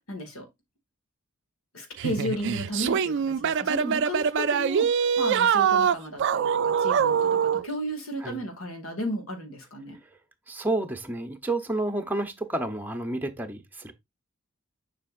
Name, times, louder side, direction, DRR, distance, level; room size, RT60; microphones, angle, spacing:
voice 1, 0.1-0.5 1.7-10.0, equal, 90° left, 2.1 m, -34 dB
sound 1, 2.0-7.7, right 7 dB, 60° right, 0.4 m, -24 dB
voice 2, 10.5-13.9, right 2 dB, 10° right, 0.9 m, -30 dB
7.2 x 5.6 x 2.5 m
head